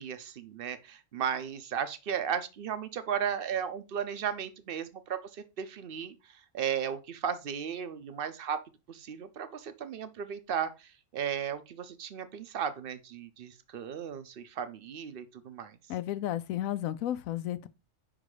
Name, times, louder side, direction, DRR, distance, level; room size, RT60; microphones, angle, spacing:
voice 1, 0.0-6.1 6.5-8.6 8.9-15.8, right 8 dB, 55° right, 0.7 m, -35 dB
voice 2, 15.9-17.7, left 12 dB, 85° left, 1.0 m, -33 dB
5.2 x 3.8 x 4.8 m
omnidirectional pair, 1.4 m